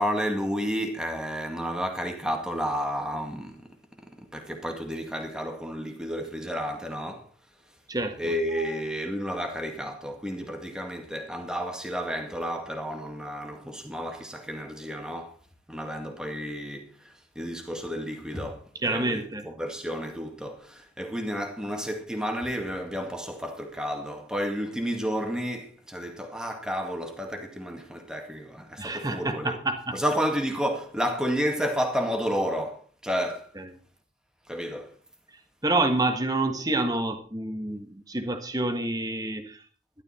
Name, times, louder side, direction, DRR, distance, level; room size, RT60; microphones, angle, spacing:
voice 1, 0.0-3.7 4.0-7.3 8.2-15.4 15.7-29.6 29.9-33.5 34.5-34.9, equal, 5° right, 1.9 m, -31 dB
voice 2, 7.9-8.7 18.7-19.5 28.8-30.0 33.5-33.8 35.6-39.6, right 2 dB, 20° right, 1.4 m, -28 dB
12.5 x 11.5 x 4.3 m
head